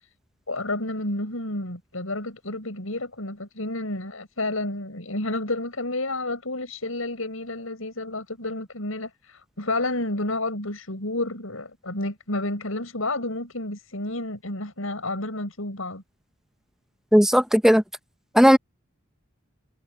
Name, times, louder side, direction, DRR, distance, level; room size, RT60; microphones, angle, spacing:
voice 1, 0.5-16.0, left 2 dB, 80° left, 6.6 m, -30 dB
voice 2, 17.1-17.8 18.3-18.6, equal, ahead, 0.8 m, -16 dB
head